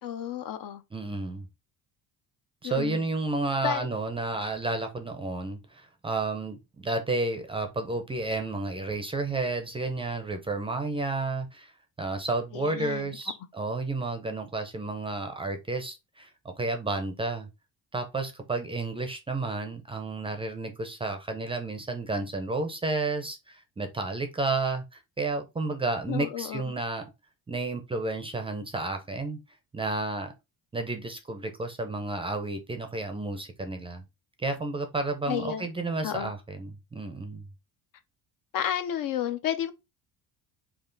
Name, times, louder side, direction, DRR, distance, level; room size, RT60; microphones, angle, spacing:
voice 1, 0.0-0.8 2.6-3.1 3.6-3.9 12.5-13.2 26.1-26.7 35.3-35.7 36.0-36.3 38.5-39.7, left 10 dB, 60° left, 0.7 m, -31 dB
voice 2, 0.9-1.5 2.6-11.7 12.0-17.5 17.9-27.0 27.5-29.4 29.7-30.3 30.7-34.0 34.4-37.5, right 3 dB, 15° right, 0.5 m, -31 dB
5.4 x 2.4 x 3.8 m
cardioid pair, 165°, 39 cm